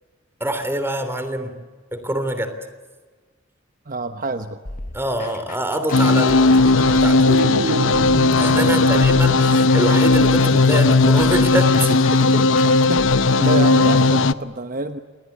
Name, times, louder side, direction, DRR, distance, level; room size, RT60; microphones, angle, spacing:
voice 1, 0.4-1.6 1.9-2.5 4.9-7.2 8.3-12.4, right 1 dB, 15° right, 9 dB, 3.2 m, -25 dB
voice 2, 3.8-4.6 8.6-9.1 12.6-13.1 13.4-15.0, right 3 dB, 45° right, 8 dB, 1.1 m, -28 dB
sound 1, 4.7-8.6 9.0-13.4, left 2 dB, 45° left, 1.5 m, -37 dB
sound 2, 5.9-14.3, left 3 dB, 80° left, 0.8 m, -16 dB
sound 3, 6.4-9.6 9.9-10.3, right 3 dB, 70° right, 2.4 m, -29 dB
28.5 x 21.5 x 8.5 m, 1.4 s
head